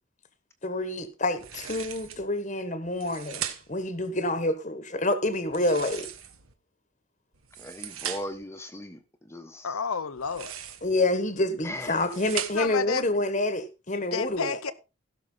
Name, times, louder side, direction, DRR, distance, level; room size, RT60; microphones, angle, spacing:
voice 1, 0.6-3.4 3.7-6.1 10.8-14.7, left 2 dB, 35° left, 1.3 m, -28 dB
sound 1, 1.4-2.3 2.9-3.9 5.4-6.5 7.3-8.5 10.1-11.0 11.6-12.8, right 9 dB, 85° right, 1.3 m, -38 dB
voice 2, 7.6-9.0 9.3-9.7 11.6-12.0, left 1 dB, 15° left, 1.1 m, -38 dB
voice 3, 9.6-10.5 12.5-13.1 14.1-14.7, left 6 dB, 90° left, 0.8 m, -30 dB
16.5 x 6.5 x 3.9 m
head